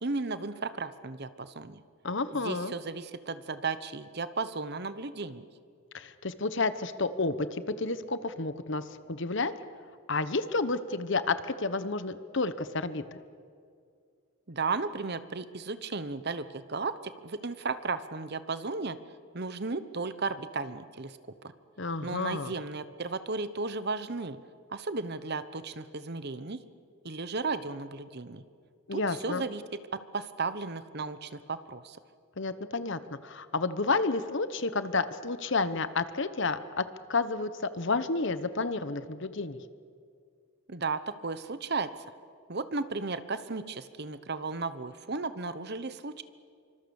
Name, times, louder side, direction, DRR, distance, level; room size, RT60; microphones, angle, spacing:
voice 1, 0.0-1.8 2.3-5.4 14.5-19.0 19.3-21.2 22.0-24.4 24.7-26.6 27.0-28.4 28.9-29.6 29.9-32.0 40.7-41.9 42.5-46.2, right 4 dB, 50° right, 13 dB, 1.0 m, -34 dB
voice 2, 2.0-2.7 5.9-9.5 10.1-13.0 21.8-22.5 28.9-29.4 32.4-36.8 37.1-39.6, left 3 dB, 55° left, 13 dB, 1.1 m, -30 dB
26.0 x 25.0 x 7.1 m, 2.3 s
head